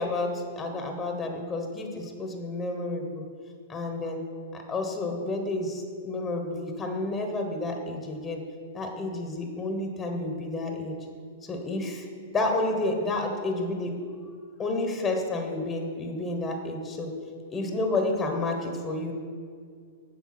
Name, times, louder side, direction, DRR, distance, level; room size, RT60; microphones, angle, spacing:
voice 1, 0.0-3.2 3.7-4.3 4.5-8.4 8.7-11.0 11.4-12.1 12.3-14.0 14.6-17.1 17.5-19.1, left 2 dB, 15° left, 4 dB, 1.2 m, -30 dB
8.2 x 5.7 x 6.0 m, 2.1 s
hypercardioid pair, 125°, 0 cm